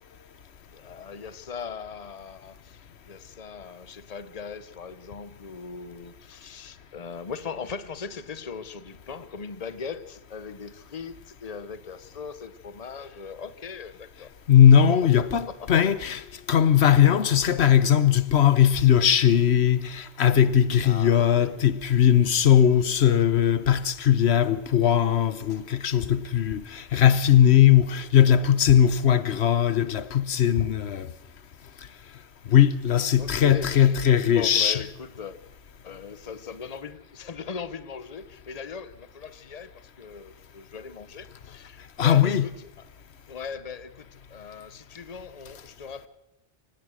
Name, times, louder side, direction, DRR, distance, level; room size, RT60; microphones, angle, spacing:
voice 1, 0.7-14.3 14.9-15.7 16.0-16.2 20.8-21.6 33.2-34.0 34.2-35.4 35.8-42.7 43.3-46.1, left 6 dB, 40° left, 1.0 m, -39 dB
voice 2, 14.5-16.2 16.5-31.1 32.5-34.8 42.0-42.5, left 9 dB, 85° left, 1.2 m, -19 dB
24.5 x 18.5 x 6.4 m
omnidirectional pair, 1.1 m